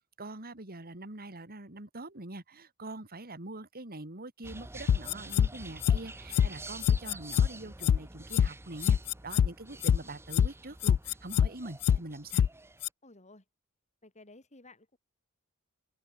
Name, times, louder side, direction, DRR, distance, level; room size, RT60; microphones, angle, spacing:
voice 1, 0.2-9.0 9.2-12.4, right 2 dB, 45° right, 3.1 m, -44 dB
sound 1, 4.4-12.9, right 2 dB, 10° right, 1.1 m, -48 dB
sound 2, 4.9-5.5 5.8-6.0 6.3-6.5 6.8-7.5 7.8-8.0 8.3-8.5 8.8-9.5 9.8-10.0 10.3-10.5 10.8-11.5 11.8-12.0 12.3-12.5 12.8-12.9, left 8 dB, 85° left, 0.3 m, -23 dB
voice 2, 13.0-13.4 14.0-15.0, left 2 dB, 35° left, 4.0 m, -55 dB
open air
head